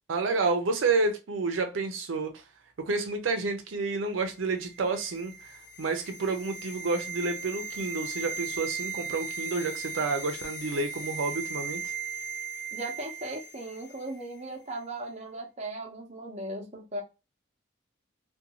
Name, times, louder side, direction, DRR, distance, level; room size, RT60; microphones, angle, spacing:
voice 1, 0.1-2.4 2.8-11.8, right 3 dB, 80° right, 0.5 m, -30 dB
sound 1, 4.6-13.8 14.1-14.2, right 5 dB, 55° left, 0.5 m, -37 dB
voice 2, 12.7-17.0, right 2 dB, 35° right, 0.6 m, -37 dB
2.5 x 2.2 x 2.8 m
head